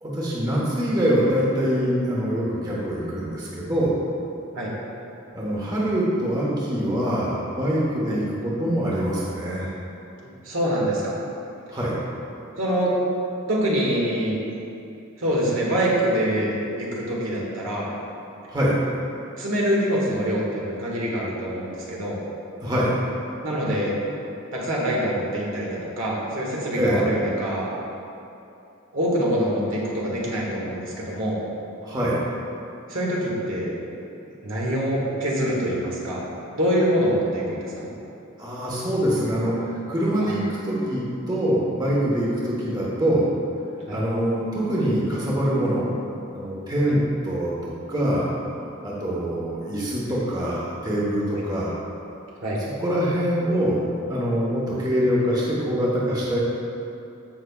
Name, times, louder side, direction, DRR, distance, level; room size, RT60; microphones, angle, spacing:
voice 1, 0.0-4.0 5.3-9.7 11.7-11.9 18.5-18.7 22.6-22.9 26.8-27.1 31.8-32.2 38.4-43.3 43.9-45.9 46.3-47.0 47.2-48.3 48.8-51.8 52.8-56.4, equal, 20° right, -6 dB, 1.2 m, -24 dB
voice 2, 10.4-11.1 12.6-12.9 13.5-14.4 15.2-17.9 19.4-22.2 23.4-23.9 24.5-27.7 28.9-31.4 32.9-33.7 34.4-36.2 36.5-37.9 40.2-40.4 43.9-44.0 51.3-51.4 52.4-52.6, equal, 70° right, -5 dB, 1.8 m, -25 dB
15.0 x 5.7 x 2.4 m, 2.7 s
head